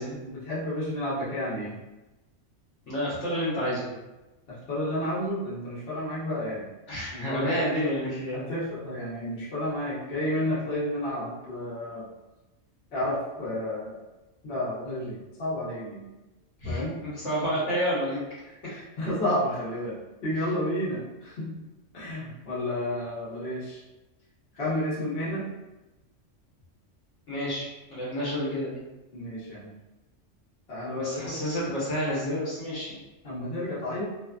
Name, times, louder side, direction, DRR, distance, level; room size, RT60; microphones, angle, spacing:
voice 1, 0.2-1.8 4.5-6.7 7.1-7.6 8.3-12.1 12.9-14.0 14.4-16.0 16.6-17.0 18.7-21.5 21.9-23.8 24.6-25.5 29.1-29.7 30.7-31.4 33.2-34.0, left 1 dB, 55° left, -8 dB, 1.1 m, -31 dB
voice 2, 2.9-3.9 6.9-8.4 16.6-18.2 20.4-20.5 27.3-28.8 30.9-33.0, equal, 70° left, -8 dB, 1.2 m, -29 dB
2.6 x 2.4 x 2.3 m, 1.0 s
omnidirectional pair, 1.3 m